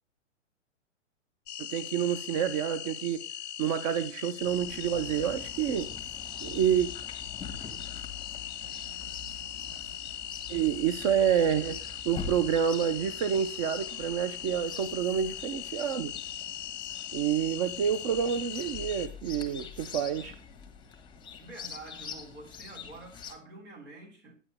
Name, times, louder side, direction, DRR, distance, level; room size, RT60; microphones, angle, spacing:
sound 1, 1.5-19.1, left 11 dB, 35° left, 0.5 m, -40 dB
voice 1, 1.6-3.2 3.6-5.9 6.4-6.9 10.5-16.1 17.1-20.3, right 9 dB, 30° right, 0.5 m, -28 dB
Chirp tweet, 4.4-23.3, left 6 dB, 10° left, 1.5 m, -45 dB
voice 2, 21.4-24.3, right 2 dB, 65° right, 4.1 m, -47 dB
9.8 x 8.6 x 3.3 m
hypercardioid pair, 115°, 38 cm